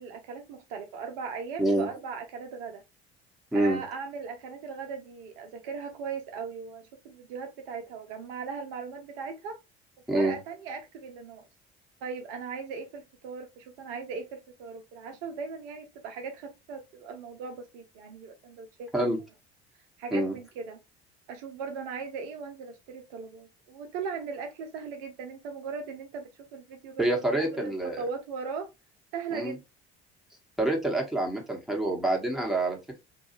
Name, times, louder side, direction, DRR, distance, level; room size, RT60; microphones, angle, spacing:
voice 1, 0.0-2.8 3.5-9.6 10.1-11.5 12.0-19.1 20.0-20.8 21.3-27.0 27.3-28.7 29.1-29.6, right 5 dB, 65° right, 0.6 m, -38 dB
voice 2, 1.6-1.9 3.5-3.8 10.1-10.3 18.9-19.2 20.1-20.3 27.0-28.0 29.3-29.5 30.6-33.0, right 1 dB, ahead, 1.0 m, -27 dB
2.6 x 2.3 x 2.8 m
figure-of-eight pair, 60°, 32 cm